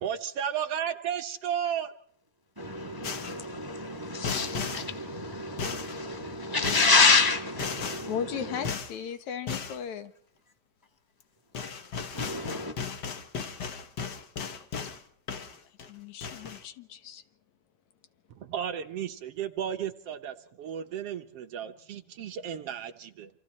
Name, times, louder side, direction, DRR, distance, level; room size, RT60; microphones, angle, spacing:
voice 1, 0.0-1.9 18.4-23.3, right 9 dB, 65° right, 7 dB, 1.8 m, -33 dB
voice 2, 2.6-8.7 12.1-12.7, left 4 dB, 10° right, 5 dB, 1.0 m, -27 dB
sound 1, 3.0-3.5 4.2-4.9 5.6-6.0 6.6-7.0 7.6-8.1 8.6-9.0 9.5-9.8 11.2-11.3 11.5-15.0 15.3-15.9 16.2-16.6, left 5 dB, 50° left, 1.3 m, -35 dB
voice 3, 8.1-10.1 15.9-17.2, left 7 dB, 75° left, 10 dB, 2.7 m, -36 dB
28.5 x 27.0 x 4.3 m, 0.63 s
omnidirectional pair, 3.3 m